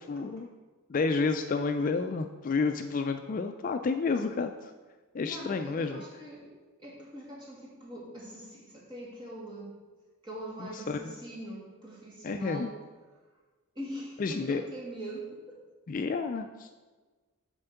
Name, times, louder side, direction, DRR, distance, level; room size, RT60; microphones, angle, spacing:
voice 1, 0.1-0.5 0.9-4.7 5.1-6.0 10.6-11.1 12.2-12.7 14.2-14.6 15.9-16.7, left 4 dB, 40° left, 7 dB, 0.3 m, -30 dB
voice 2, 5.2-6.5 6.8-9.7 10.2-12.8 13.8-15.6, right 1 dB, 20° right, -5 dB, 2.2 m, -42 dB
7.2 x 4.4 x 6.8 m, 1.3 s
head